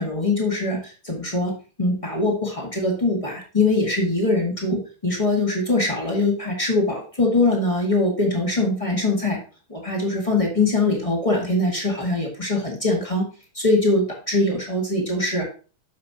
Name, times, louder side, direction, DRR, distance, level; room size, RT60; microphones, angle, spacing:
voice 1, 0.0-9.4 9.7-13.3 13.5-15.5, left 2 dB, 25° left, -1 dB, 0.8 m, -22 dB
9.3 x 6.3 x 2.8 m, 0.36 s
omnidirectional pair, 3.7 m